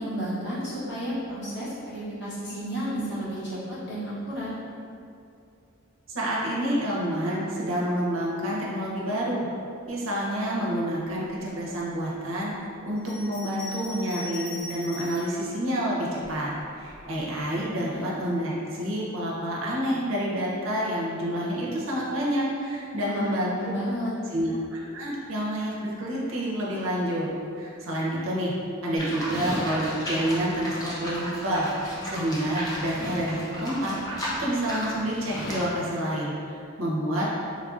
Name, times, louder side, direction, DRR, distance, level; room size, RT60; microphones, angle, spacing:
voice 1, 0.0-4.5 17.8-18.0 22.9-24.1, equal, 55° left, -10 dB, 1.0 m, -32 dB
voice 2, 6.1-9.4 9.9-12.5 12.8-23.7 24.3-27.3 27.6-28.5 28.8-37.3, equal, 65° right, -5 dB, 0.6 m, -28 dB
Bell, 13.0-15.4 16.1-17.1, left 3 dB, 80° left, 1.1 m, -40 dB
Livestock farm animals working animals, 29.0-35.7, equal, 15° left, 0.4 m, -34 dB
3.4 x 2.5 x 2.4 m, 2.5 s
head